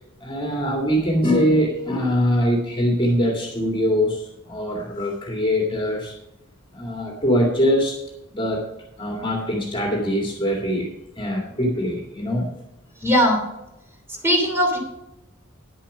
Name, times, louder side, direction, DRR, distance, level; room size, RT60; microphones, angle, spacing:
voice 1, 0.2-6.1 6.7-8.0 8.3-8.7 9.0-10.9 11.2-12.5, equal, 25° left, -1 dB, 2.0 m, -22 dB
voice 2, 13.0-13.4 14.2-14.8, equal, 10° right, 1 dB, 2.9 m, -18 dB
10.0 x 7.3 x 5.5 m, 0.89 s
head